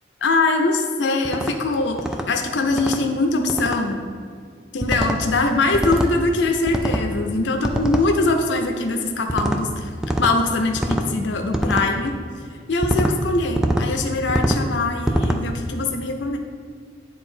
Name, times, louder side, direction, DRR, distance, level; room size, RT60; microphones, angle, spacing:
voice 1, 0.2-2.0 2.3-4.0 4.7-9.9 10.2-12.1 12.7-16.4, left 2 dB, 85° left, 3 dB, 0.6 m, -22 dB
sound 1, 1.2-1.5 2.0-2.3 2.7-3.0 3.5-3.8 4.8-5.2 5.7-6.1 6.7-7.1 7.6-8.1 9.3-9.6 10.0-10.3 10.8-11.1 11.5-11.9 12.8-13.1 13.6-13.9 14.3-14.6 15.1-15.4, equal, 5° right, 0.3 m, -23 dB
9.4 x 3.5 x 4.4 m, 2.1 s
head